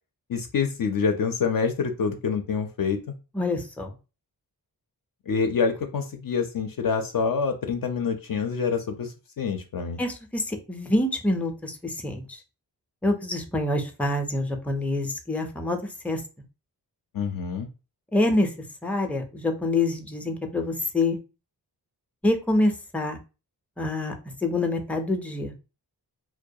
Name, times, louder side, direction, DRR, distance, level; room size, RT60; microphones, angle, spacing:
voice 1, 0.3-3.0 5.3-10.0 17.1-17.7, left 5 dB, 55° left, 5 dB, 0.5 m, -26 dB
voice 2, 3.3-3.9 10.0-12.4 13.0-15.8 16.0-16.2 18.1-18.5 18.8-21.2 22.2-23.2 23.8-25.5, left 2 dB, 5° left, 4 dB, 0.4 m, -26 dB
2.3 x 2.1 x 2.6 m, 0.31 s
cardioid pair, 65°, 40 cm